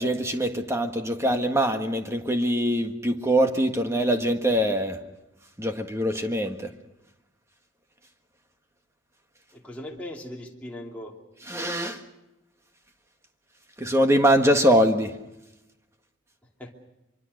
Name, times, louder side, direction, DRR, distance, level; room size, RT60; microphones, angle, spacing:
voice 1, 0.0-5.0 5.6-6.7 11.5-12.0 13.8-15.1, equal, 15° right, 1.5 m, -23 dB
voice 2, 9.5-11.2 16.6-16.7, left 1 dB, 5° left, 2.8 m, -39 dB
24.5 x 24.0 x 6.6 m
head